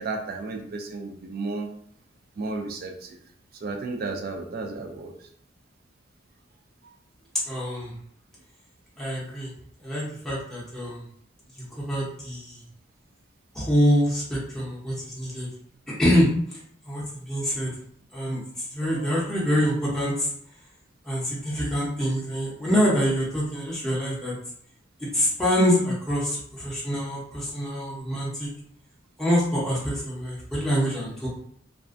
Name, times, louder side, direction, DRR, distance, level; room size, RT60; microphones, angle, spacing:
voice 1, 0.0-1.7 2.4-3.2 3.6-5.3 18.8-19.3, right 3 dB, 50° right, 2 dB, 0.3 m, -33 dB
voice 2, 7.5-7.9 9.0-9.5 9.8-11.0 11.7-12.6 13.5-15.5 16.0-16.6 16.9-17.7 18.1-18.4 18.7-20.3 21.0-24.3 25.0-28.5 29.2-31.3, equal, 5° left, -8 dB, 0.6 m, -25 dB
2.4 x 2.1 x 2.4 m, 0.63 s
head